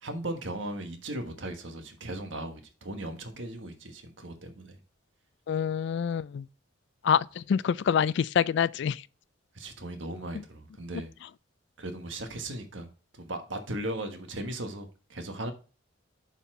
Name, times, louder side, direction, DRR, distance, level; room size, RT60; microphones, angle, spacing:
voice 1, 0.0-4.8 9.5-11.1 11.8-12.9 13.1-15.5, right 1 dB, 70° right, 1.4 m, -37 dB
voice 2, 5.5-6.5 7.0-9.0, left 7 dB, 60° left, 0.3 m, -26 dB
6.9 x 4.3 x 4.7 m
head